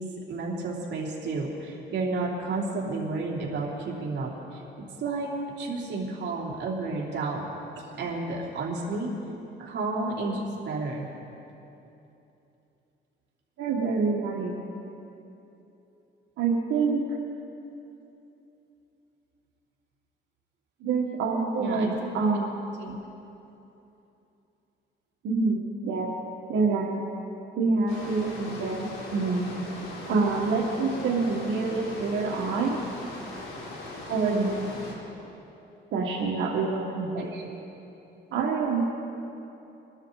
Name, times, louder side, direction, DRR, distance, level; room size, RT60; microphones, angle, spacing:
voice 1, 0.0-4.6 5.0-5.3 5.6-7.4 7.8-9.1 9.6-11.1 21.6-22.1 22.8-22.9 34.3-34.7 37.3-37.5, right 3 dB, 60° right, -3 dB, 3.4 m, -31 dB
voice 2, 13.6-14.5 16.4-17.0 20.8-21.9 22.1-22.5 25.2-26.1 26.5-27.0 27.6-29.6 30.1-32.8 34.1-34.6 35.9-37.3 38.3-38.8, right 4 dB, 80° right, -4 dB, 1.6 m, -26 dB
sound 1, 27.9-34.9, left 2 dB, 85° left, 3.4 m, -40 dB
23.5 x 12.5 x 4.0 m, 2.9 s
cardioid pair, 90°, 20 cm